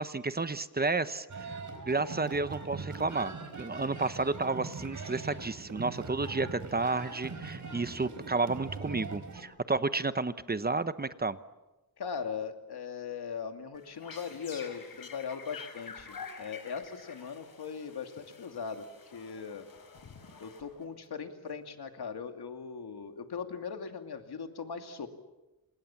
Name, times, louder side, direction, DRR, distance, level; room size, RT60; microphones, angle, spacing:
voice 1, 0.0-1.6 1.9-11.4, right 3 dB, 25° right, 12 dB, 0.9 m, -31 dB
sound 1, 1.3-9.4, right 4 dB, 50° right, 4.7 m, -42 dB
voice 2, 12.0-19.7 20.4-25.1, left 6 dB, 90° left, 6 dB, 2.7 m, -39 dB
sound 2, 13.7-21.0, left 5 dB, 65° left, 4.9 m, -48 dB
28.5 x 27.5 x 7.3 m, 1.0 s
wide cardioid pair, 170°, 38 cm